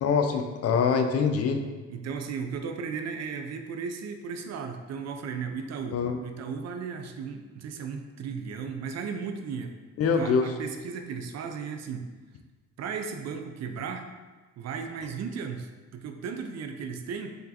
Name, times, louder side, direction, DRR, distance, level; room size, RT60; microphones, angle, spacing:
voice 1, 0.0-1.6 5.9-6.2 10.0-10.5, left 5 dB, 55° left, 5 dB, 0.5 m, -24 dB
voice 2, 1.9-9.7 10.0-12.1 12.8-14.1 14.6-17.4, right 6 dB, 60° right, 6 dB, 0.5 m, -35 dB
3.9 x 3.5 x 2.8 m, 1.3 s
cardioid pair, 90°, 30 cm